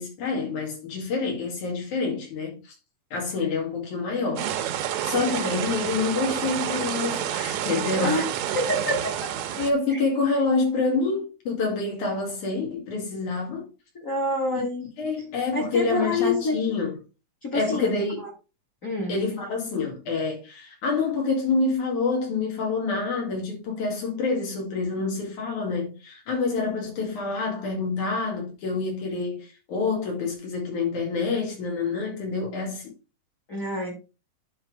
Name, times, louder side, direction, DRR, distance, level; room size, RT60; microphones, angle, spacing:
voice 1, 0.0-2.7 3.1-8.2 9.6-13.7 15.0-17.0 17.5-18.2 19.1-32.9, left 4 dB, 80° left, 3.8 m, -27 dB
sound 1, 4.4-9.7, right 10 dB, 75° right, 2.1 m, -29 dB
voice 2, 8.5-9.1 13.9-14.9 15.5-16.7 17.4-18.0 18.8-19.2 33.5-34.0, left 1 dB, 35° left, 1.5 m, -27 dB
10.5 x 4.1 x 3.3 m
omnidirectional pair, 3.4 m